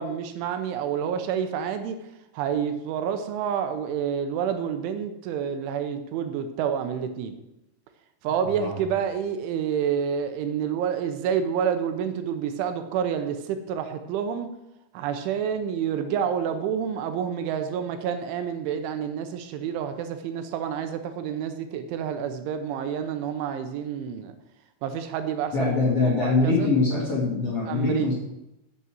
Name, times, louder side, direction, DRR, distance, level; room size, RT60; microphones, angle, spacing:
voice 1, 0.0-7.4 8.2-14.5 14.9-24.3 24.8-26.7 27.7-28.1, right 8 dB, 80° right, 8 dB, 3.1 m, -28 dB
voice 2, 8.4-8.7 25.5-28.1, left 3 dB, 40° left, -5 dB, 2.4 m, -23 dB
8.3 x 7.7 x 7.5 m, 0.90 s
omnidirectional pair, 5.6 m